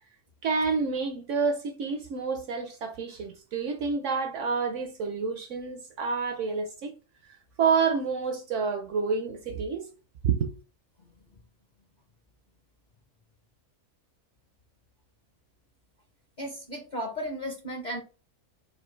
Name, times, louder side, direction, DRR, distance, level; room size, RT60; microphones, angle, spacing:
voice 1, 0.4-6.9 7.6-9.9 10.2-10.5, right 5 dB, 65° right, 0.8 m, -28 dB
voice 2, 16.4-18.0, equal, 45° left, 0.6 m, -34 dB
4.3 x 2.6 x 3.1 m
omnidirectional pair, 1.6 m